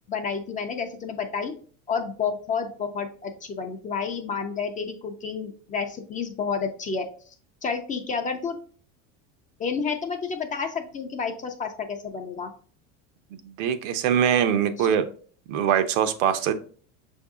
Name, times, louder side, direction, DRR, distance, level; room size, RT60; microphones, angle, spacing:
voice 1, 0.1-1.5 1.9-7.1 7.6-8.6 9.6-12.5 14.8-14.9, left 5 dB, 20° left, 6 dB, 0.3 m, -30 dB
voice 2, 13.3-15.1 15.5-16.5, right 8 dB, 90° right, 9 dB, 0.7 m, -23 dB
5.3 x 2.7 x 3.5 m, 0.43 s
cardioid pair, 145°, 37 cm